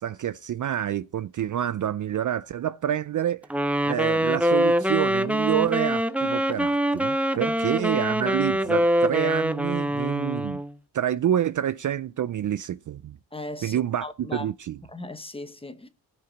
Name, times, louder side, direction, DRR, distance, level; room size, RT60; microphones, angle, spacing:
voice 1, 0.0-3.5 3.9-10.6 10.9-13.2 13.6-14.8, right 10 dB, 50° right, 0.4 m, -28 dB
Wind instrument woodwind instrument, 3.5-10.7, equal, 5° right, 0.6 m, -24 dB
voice 2, 13.3-14.5 14.9-15.9, left 2 dB, 15° left, 1.1 m, -38 dB
17.0 x 5.8 x 4.0 m
cardioid pair, 85°, 42 cm